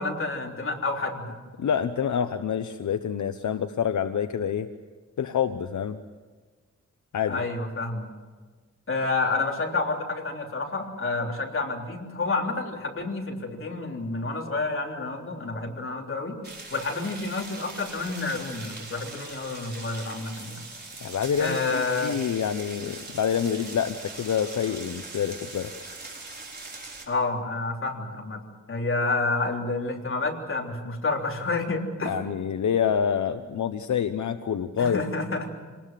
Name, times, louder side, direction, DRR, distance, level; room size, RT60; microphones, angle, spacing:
voice 1, 0.0-1.3 7.3-8.1 8.9-16.4 16.7-20.6 21.4-22.2 27.1-28.4 28.7-32.2 34.8-35.5, left 3 dB, 45° left, 0 dB, 3.5 m, -29 dB
voice 2, 1.6-4.7 5.2-6.0 7.1-7.4 21.0-25.7 32.0-35.0, left 8 dB, 75° left, 9 dB, 0.9 m, -27 dB
sound 1, 16.4-27.0, right 3 dB, 35° right, 4.8 m, -41 dB
26.5 x 20.0 x 7.6 m, 1.4 s
wide cardioid pair, 155°, 30 cm